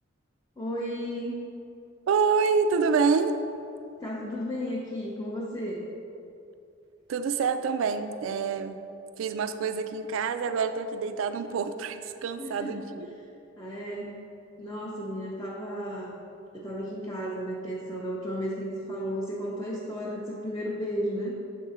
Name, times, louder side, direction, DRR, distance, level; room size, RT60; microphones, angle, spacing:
voice 1, 0.6-1.4 4.0-5.8 12.4-12.9 13.6-14.1 14.6-16.2 16.5-21.3, equal, 15° left, -5 dB, 0.5 m, -33 dB
voice 2, 2.1-3.4 7.1-8.8 9.2-13.1, right 5 dB, 80° right, 10 dB, 0.3 m, -27 dB
6.6 x 3.7 x 4.1 m, 2.7 s
head